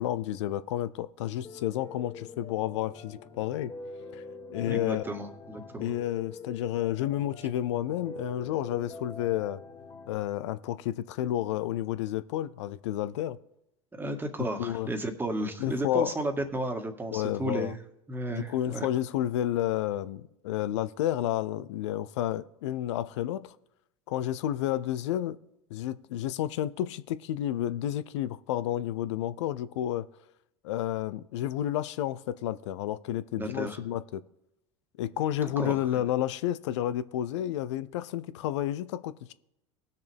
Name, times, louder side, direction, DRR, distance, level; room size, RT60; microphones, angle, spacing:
voice 1, 0.0-3.7 4.1-4.2 4.5-5.0 5.8-9.6 10.1-13.4 14.6-14.9 15.6-16.2 17.1-17.7 18.3-23.5 24.1-25.4 25.7-30.1 30.6-34.2 35.0-39.3, left 12 dB, 70° left, 0.6 m, -31 dB
Piano, 1.4-10.2, left 3 dB, 25° left, 2.3 m, -45 dB
voice 2, 4.6-5.9 14.0-17.8 18.1-18.9 33.4-33.8 35.6-35.7, right 1 dB, 15° right, 1.8 m, -33 dB
19.0 x 6.6 x 3.5 m
hypercardioid pair, 90°, 15 cm